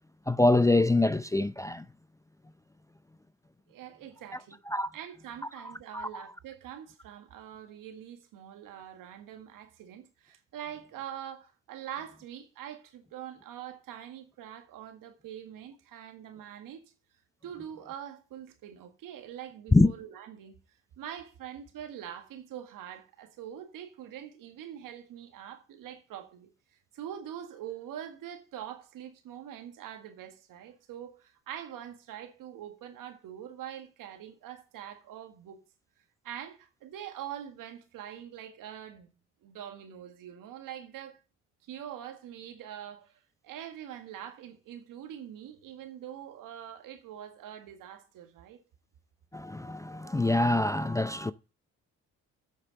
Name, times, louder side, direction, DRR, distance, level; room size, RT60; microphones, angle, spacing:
voice 1, 0.3-1.8 4.7-4.9 5.9-6.2 19.7-19.9 49.3-51.3, left 2 dB, 10° left, 0.4 m, -24 dB
voice 2, 3.7-4.6 4.9-16.8 17.4-20.6 21.0-35.6 36.2-39.1 39.4-41.2 41.6-43.1 43.4-48.6, right 10 dB, 65° right, 1.9 m, -44 dB
8.1 x 6.7 x 7.7 m
hypercardioid pair, 55°, 35 cm